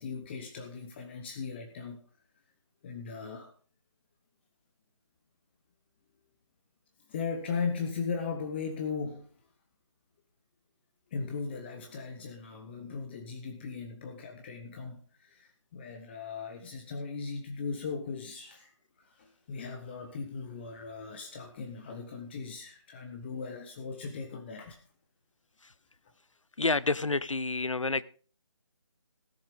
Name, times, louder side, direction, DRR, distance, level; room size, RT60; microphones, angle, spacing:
voice 1, 0.0-2.0 2.8-3.5 7.1-9.3 11.1-24.8, left 5 dB, 20° left, 5 dB, 1.0 m, -38 dB
voice 2, 26.6-28.0, left 3 dB, 85° left, 18 dB, 0.7 m, -28 dB
17.0 x 7.5 x 5.0 m, 0.43 s
figure-of-eight pair, 155°, 16 cm